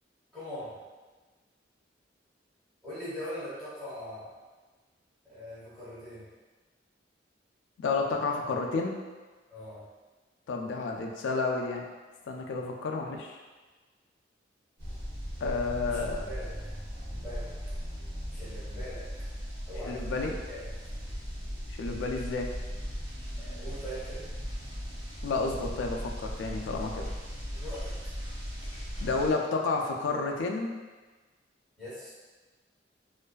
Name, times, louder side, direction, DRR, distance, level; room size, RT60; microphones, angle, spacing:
voice 1, 0.3-0.7 2.8-4.3 5.3-6.3 9.5-9.8 15.8-16.5 17.1-17.5 18.3-19.0 19.7-20.6 23.4-24.2 27.5-27.9 31.8-32.1, equal, ahead, -16 dB, 1.1 m, -41 dB
voice 2, 7.8-9.0 10.5-11.8 12.2-13.4 15.4-16.2 19.8-20.4 21.7-22.5 25.2-27.0 28.6-30.7, left 3 dB, 90° left, 2 dB, 0.3 m, -31 dB
sound 1, 14.8-29.3, equal, 60° right, 0.9 m, -38 dB
2.5 x 2.2 x 2.2 m, 1.3 s
head